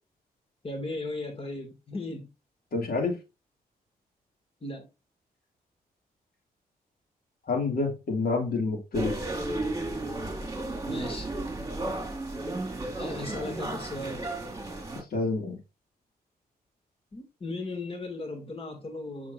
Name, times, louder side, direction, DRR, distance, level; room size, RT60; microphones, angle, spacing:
voice 1, 0.6-2.3 4.6-4.9 10.9-11.3 13.0-14.3 17.1-19.3, left 2 dB, 35° left, 2.2 m, -36 dB
voice 2, 2.7-3.2 7.4-9.2 15.1-15.6, left 3 dB, 70° left, 2.5 m, -28 dB
sound 1, 8.9-15.0, right 2 dB, 20° right, 2.2 m, -33 dB
7.0 x 6.3 x 2.6 m
cardioid pair, 75°, 16 cm